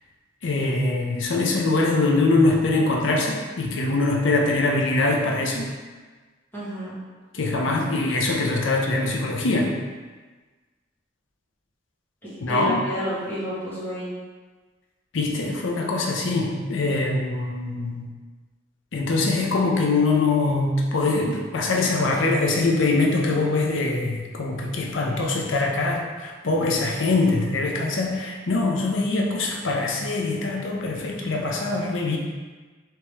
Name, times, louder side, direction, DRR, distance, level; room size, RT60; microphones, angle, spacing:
voice 1, 0.4-5.7 7.3-9.7 12.4-12.8 15.1-18.0 18.9-32.2, left 3 dB, 90° left, 0 dB, 0.6 m, -23 dB
voice 2, 6.5-7.0 12.2-14.1, equal, 10° left, -12 dB, 1.5 m, -30 dB
3.3 x 3.0 x 3.1 m, 1.4 s
head